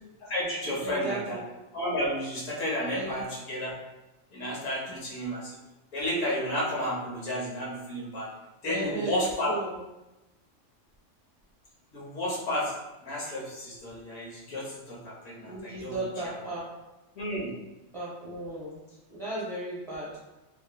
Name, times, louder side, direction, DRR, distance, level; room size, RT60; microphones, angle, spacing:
voice 1, 0.2-1.4 1.7-3.7 4.3-5.6 5.9-8.3 8.6-9.5 11.9-12.7 13.0-15.9 16.2-16.5 17.1-17.5, equal, 85° left, -5 dB, 1.2 m, -32 dB
voice 2, 0.8-1.4 2.9-3.2 4.9-5.0 8.6-9.8 15.4-16.7 17.9-18.7 19.1-20.1, right 2 dB, 35° right, -8 dB, 0.6 m, -35 dB
2.9 x 2.5 x 2.2 m, 1.0 s
omnidirectional pair, 1.3 m